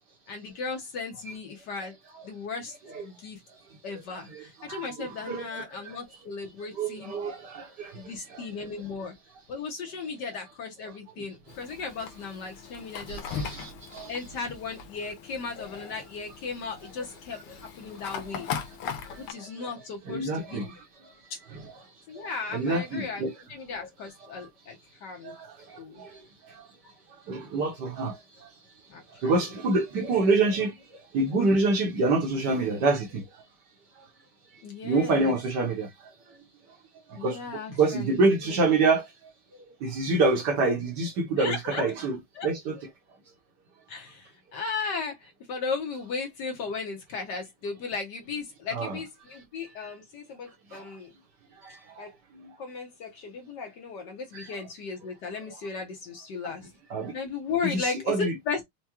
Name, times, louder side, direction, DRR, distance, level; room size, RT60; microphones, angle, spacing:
voice 1, 0.3-1.9 2.2-3.4 3.8-7.2 7.9-9.1 9.5-13.2 14.1-18.5 19.1-20.7 22.1-25.4 25.8-26.0 28.9-29.3 34.6-35.4 37.1-38.6 41.4-41.9 42.4-42.5 43.9-51.1 52.0-52.1 52.6-56.7 57.1-58.6, left 4 dB, 60° left, 1.3 m, -36 dB
voice 2, 4.1-6.0 6.7-8.5 10.8-10.9 13.1-14.2 15.6-15.7 18.3-18.4 19.1-19.7 20.1-20.8 21.5-21.7 22.2-22.3 22.5-23.3 25.2-26.2 26.5-26.6 27.3-28.2 29.2-30.7 31.1-33.2 34.8-35.9 37.1-39.0 39.8-42.2 42.4-42.8 48.7-49.0 50.7-50.9 51.6-52.1 54.3-54.6 56.4-56.5 56.9-57.1 57.6-58.3, right 3 dB, 60° right, 1.3 m, -27 dB
Fire, 11.5-19.3, left 6 dB, 85° left, 1.6 m, -39 dB
4.6 x 2.2 x 2.9 m
omnidirectional pair, 2.4 m